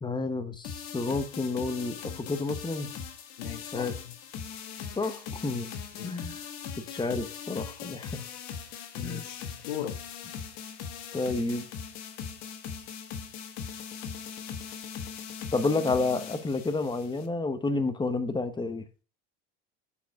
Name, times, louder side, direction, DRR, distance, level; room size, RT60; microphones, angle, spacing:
voice 1, 0.0-2.9 3.7-4.0 4.9-5.7 6.0-6.4 6.8-8.2 9.0-9.3 11.1-11.6 15.5-18.9, left 3 dB, 15° left, 1.0 m, -30 dB
sound 1, 0.6-17.3, left 7 dB, 60° left, 1.4 m, -40 dB
voice 2, 3.4-3.9 6.0-6.1 8.9-10.0, left 11 dB, 80° left, 1.2 m, -37 dB
7.1 x 4.7 x 5.2 m
supercardioid pair, 95°, 30 cm